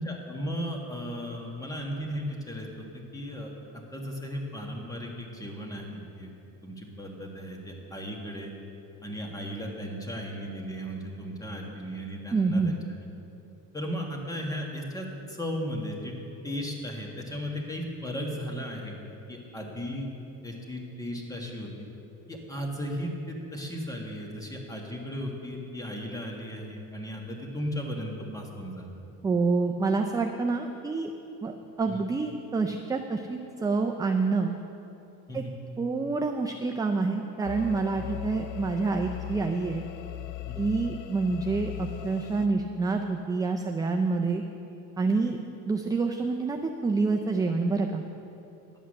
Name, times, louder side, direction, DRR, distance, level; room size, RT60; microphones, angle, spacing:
voice 1, 0.0-6.3 6.6-8.5 9.0-12.8 13.7-16.1 16.4-20.1 20.4-21.9 22.3-28.9 31.9-32.0 35.3-35.5 40.5-40.6, equal, 10° left, 0 dB, 1.5 m, -36 dB
voice 2, 12.3-12.7 29.2-31.1 31.4-34.5 35.3-35.4 35.8-39.8 40.6-44.4 45.0-45.4 45.7-48.0, right 4 dB, 10° right, 3 dB, 0.3 m, -27 dB
sound 1, 37.5-42.5, left 13 dB, 60° left, 0.5 m, -38 dB
11.0 x 8.1 x 6.4 m, 2.8 s
cardioid pair, 140°, 35 cm